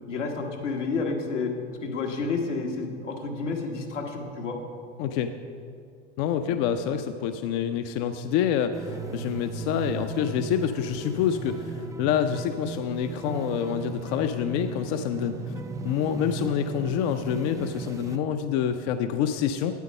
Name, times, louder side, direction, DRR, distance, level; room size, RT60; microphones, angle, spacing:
voice 1, 0.1-1.5 1.8-4.6 6.5-6.6, left 4 dB, 85° left, 1 dB, 1.4 m, -30 dB
voice 2, 5.0-5.3 6.2-15.5 15.8-19.7, left 9 dB, 50° left, 8 dB, 0.6 m, -27 dB
sound 1, 8.7-18.2, right 4 dB, 10° right, 0.3 m, -36 dB
8.7 x 8.2 x 5.4 m, 2.3 s
hypercardioid pair, 85°, 35 cm